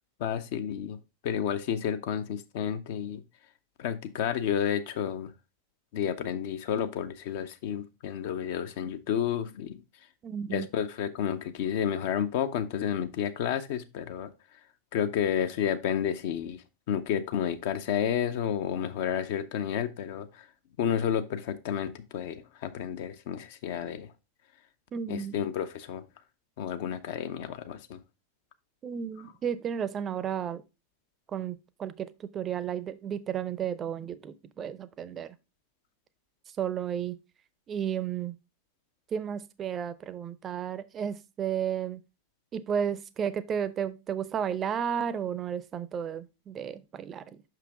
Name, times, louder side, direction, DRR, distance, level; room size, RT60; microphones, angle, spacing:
voice 1, 0.2-1.0 1.2-3.2 3.8-5.3 5.9-9.8 10.5-14.3 14.9-20.5 20.8-24.1 25.1-26.0 26.6-28.0, left 9 dB, 50° left, 0.7 m, -31 dB
voice 2, 10.2-10.7 24.9-25.4 28.8-30.6 31.3-35.4 36.6-37.2 37.7-38.3 39.1-42.0 42.5-47.4, right 8 dB, 25° right, 0.6 m, -33 dB
5.9 x 5.9 x 3.4 m
figure-of-eight pair, 90°, 0 cm